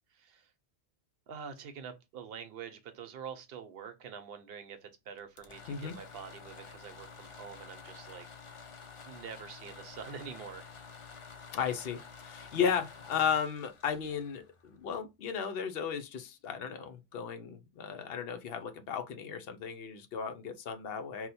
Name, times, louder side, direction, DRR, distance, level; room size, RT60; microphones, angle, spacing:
voice 1, 0.1-0.5 1.3-8.3 9.1-10.7, right 7 dB, 70° right, 0.8 m, -46 dB
sound 1, 5.2-15.0, left 5 dB, 55° left, 0.3 m, -50 dB
voice 2, 11.5-21.3, left 7 dB, 70° left, 0.8 m, -35 dB
2.8 x 2.1 x 4.0 m
omnidirectional pair, 1.1 m